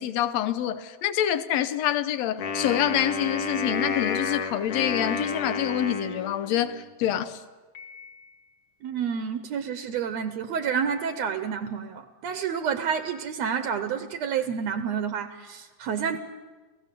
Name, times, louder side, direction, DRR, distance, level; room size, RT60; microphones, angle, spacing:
voice 1, 0.0-7.4, left 11 dB, 70° left, 1.9 m, -26 dB
Wind instrument woodwind instrument, 2.4-6.8, left 4 dB, 85° left, 3.1 m, -30 dB
Piano, 7.8-8.9, left 5 dB, 50° left, 3.2 m, -48 dB
voice 2, 8.8-16.2, right 7 dB, 70° right, 1.9 m, -29 dB
29.0 x 17.0 x 6.8 m
omnidirectional pair, 3.4 m